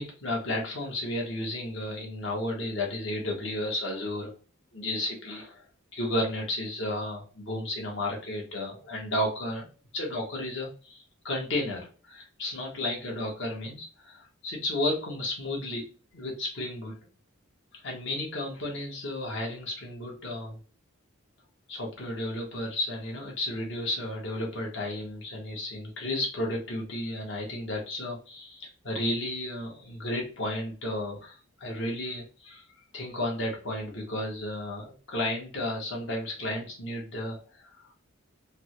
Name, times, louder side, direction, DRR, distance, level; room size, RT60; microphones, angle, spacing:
voice 1, 0.0-4.3 4.7-5.6 5.9-9.7 9.9-15.8 16.1-17.0 17.7-20.6 21.7-32.6 32.9-37.9, left 1 dB, 55° left, -1 dB, 1.1 m, -33 dB
3.4 x 2.1 x 2.9 m, 0.37 s
head